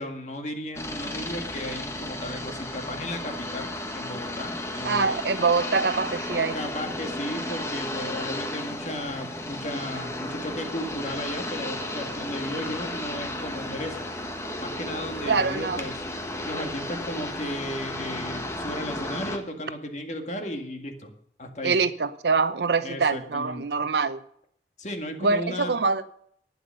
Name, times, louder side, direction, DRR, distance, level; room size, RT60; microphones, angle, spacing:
voice 1, 0.0-5.2 6.5-14.0 14.6-16.1 16.4-21.1 21.4-21.8 22.8-23.7 24.8-25.8, left 1 dB, 40° left, 1.9 m, -35 dB
sound 1, 0.7-19.4, left 1 dB, 15° left, 1.4 m, -34 dB
voice 2, 4.8-6.6 15.3-15.9 21.6-24.2 25.2-26.0, right 4 dB, 70° right, 0.7 m, -24 dB
11.5 x 9.7 x 6.6 m
head